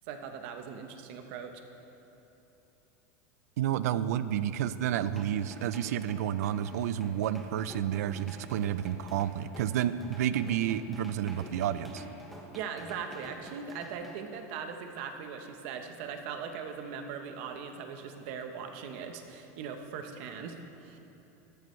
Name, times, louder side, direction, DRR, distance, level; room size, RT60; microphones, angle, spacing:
voice 1, 0.0-1.5 12.5-21.0, right 6 dB, 50° right, 6 dB, 0.9 m, -40 dB
voice 2, 3.6-12.0, right 10 dB, 90° right, 14 dB, 0.4 m, -30 dB
sound 1, 4.9-14.2, equal, ahead, 0.7 m, -49 dB
13.0 x 11.5 x 3.2 m, 3.0 s
supercardioid pair, 175°, 8 cm